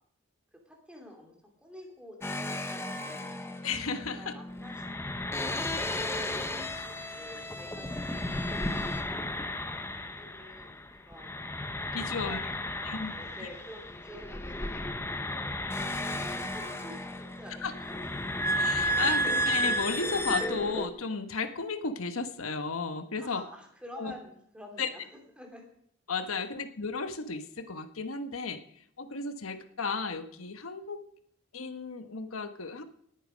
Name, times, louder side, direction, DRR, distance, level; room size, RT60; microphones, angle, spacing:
voice 1, 0.5-3.4 4.1-11.4 12.0-15.6 16.0-18.1 23.2-25.1 25.4-25.6, equal, 5° right, 1 dB, 2.9 m, -50 dB
sound 1, 2.2-10.9 11.1-20.9, equal, 10° left, 0.8 m, -33 dB
voice 2, 3.6-4.3 11.9-12.5 12.8-13.1 17.6-17.7 18.5-23.4 24.0-24.1 24.8-24.9 26.1-31.0 31.5-32.8, left 4 dB, 85° left, 9 dB, 1.3 m, -34 dB
19.0 x 9.0 x 5.2 m, 0.68 s
head